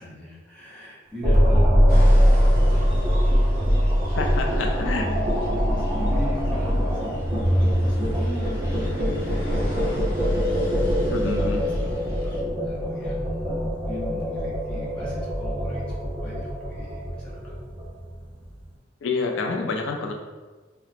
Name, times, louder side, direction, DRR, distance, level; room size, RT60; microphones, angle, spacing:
voice 1, 0.0-3.6 4.1-4.2 4.8-7.2 7.5-17.5, equal, 5° left, -8 dB, 0.8 m, -39 dB
sound 1, 1.2-18.5, equal, 25° right, 0.7 m, -22 dB
sound 2, 1.9-12.4, equal, 50° left, 0.8 m, -40 dB
voice 2, 4.1-5.0 11.1-11.6 19.0-20.2, left 3 dB, 80° left, 2 dB, 0.4 m, -28 dB
Bowed string instrument, 4.2-11.7, equal, 75° right, 0.5 m, -41 dB
3.0 x 2.1 x 4.0 m, 1.3 s
head